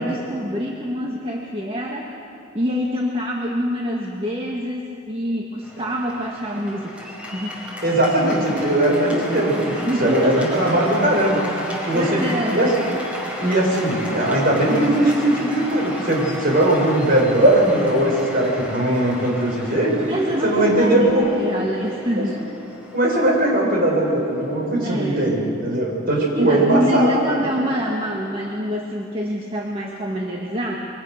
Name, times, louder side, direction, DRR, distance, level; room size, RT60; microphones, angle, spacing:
voice 1, 0.0-2.2 2.5-7.6 9.7-11.0 11.9-12.6 20.1-22.5 24.8-25.3 26.2-30.8, equal, 25° right, -1 dB, 1.6 m, -26 dB
Cheering / Applause, 5.6-24.9, left 1 dB, 5° right, 5.0 m, -34 dB
voice 2, 7.8-11.4 11.9-12.7 13.4-20.0 20.4-21.3 22.9-27.4, right 1 dB, 50° right, -1 dB, 6.0 m, -19 dB
26.5 x 23.5 x 6.6 m, 2.9 s
head